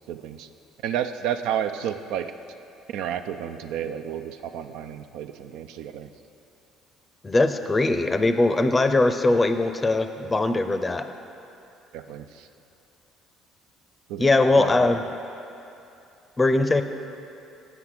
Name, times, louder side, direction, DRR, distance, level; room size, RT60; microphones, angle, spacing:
voice 1, 0.1-0.5 0.8-2.3 2.9-6.1 11.9-12.5 14.1-14.3 14.5-14.9, right 9 dB, 70° right, 8 dB, 0.3 m, -31 dB
voice 2, 7.2-11.1 14.2-15.0 16.4-16.8, left 2 dB, 25° left, 9 dB, 0.5 m, -21 dB
7.9 x 5.9 x 5.8 m, 2.7 s
hypercardioid pair, 55°, 0 cm